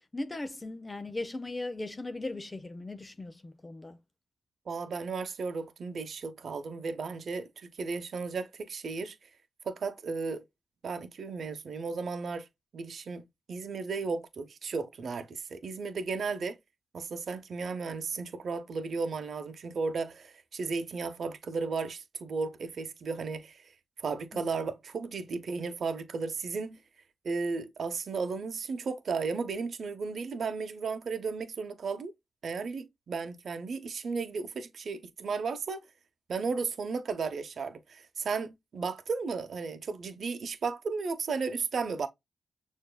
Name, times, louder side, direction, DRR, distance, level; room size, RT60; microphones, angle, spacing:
voice 1, 0.1-4.0 24.3-24.4, left 2 dB, 25° left, 0.7 m, -38 dB
voice 2, 4.7-9.2 9.6-10.4 10.8-12.5 12.7-16.6 16.9-23.7 24.0-26.8 27.2-32.1 32.4-35.9 36.3-42.1, right 4 dB, 65° right, 0.8 m, -34 dB
6.8 x 2.7 x 2.3 m
cardioid pair, 85°, 0 cm